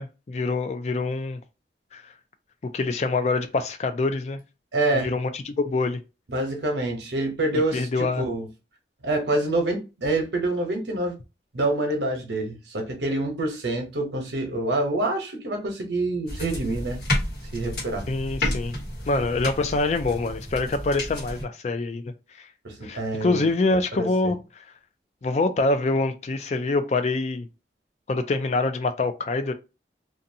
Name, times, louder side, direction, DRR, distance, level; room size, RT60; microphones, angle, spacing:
voice 1, 0.0-1.4 1.9-2.0 2.7-4.4 4.9-6.0 7.7-8.2 18.1-18.7 19.1-22.5 22.8-24.4 25.2-27.5 28.1-29.5, left 3 dB, 40° left, 0.3 m, -25 dB
voice 2, 4.7-5.1 6.3-8.5 9.0-11.1 11.5-17.0 17.5-18.1 22.6-24.4, right 2 dB, 75° right, 0.8 m, -27 dB
sound 1, 16.3-21.4, left 1 dB, 60° left, 1.1 m, -31 dB
2.6 x 2.2 x 2.6 m
head